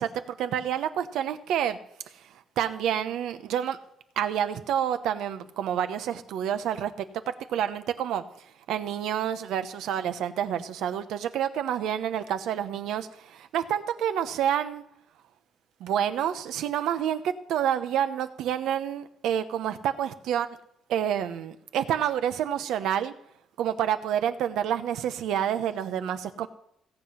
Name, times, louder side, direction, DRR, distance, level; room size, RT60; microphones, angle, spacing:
voice 1, 0.0-1.8 2.1-3.8 4.2-8.2 8.7-14.8 15.8-20.6 20.9-23.1 23.6-26.5, right 9 dB, 85° right, 11 dB, 0.9 m, -28 dB
17.0 x 7.7 x 5.7 m, 0.78 s
cardioid pair, 120°, 0 cm